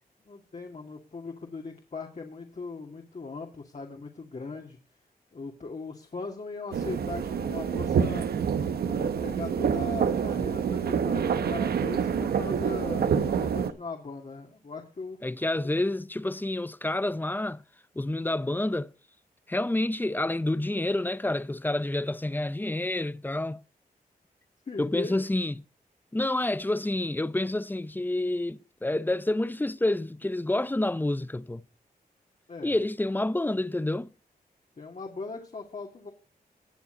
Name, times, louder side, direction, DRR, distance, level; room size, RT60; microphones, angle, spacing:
voice 1, 0.3-4.8 5.3-8.3 8.9-15.2 15.6-15.8 24.7-25.3 32.5-32.8 34.8-36.1, left 3 dB, 45° left, 2.8 m, -39 dB
sound 1, 6.7-13.7, right 7 dB, 80° right, 1.1 m, -27 dB
voice 2, 15.2-17.6 18.0-18.9 19.5-23.6 24.8-25.5 26.1-31.6 32.6-34.1, left 1 dB, 10° left, 0.8 m, -28 dB
21.0 x 7.2 x 4.1 m
cardioid pair, 60°, 16 cm